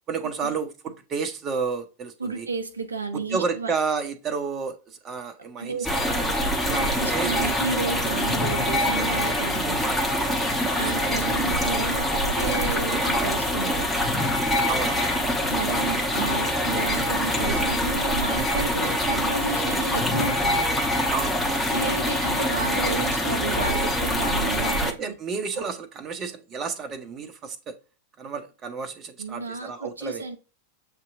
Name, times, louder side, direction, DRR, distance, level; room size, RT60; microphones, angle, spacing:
voice 1, 0.1-2.5 3.1-5.8 6.2-7.6 9.7-10.0 10.3-11.2 14.7-15.4 21.1-21.5 24.8-27.7 28.2-30.2, right 5 dB, 25° right, 0.8 m, -31 dB
voice 2, 2.2-3.7 5.6-6.0 6.7-9.8 10.6-14.3 15.5-20.7 21.7-25.2 29.2-30.4, right 4 dB, 75° right, 0.6 m, -32 dB
sound 1, 5.8-24.9, left 1 dB, 5° left, 1.1 m, -24 dB
7.3 x 2.8 x 2.6 m
figure-of-eight pair, 90°, 0 cm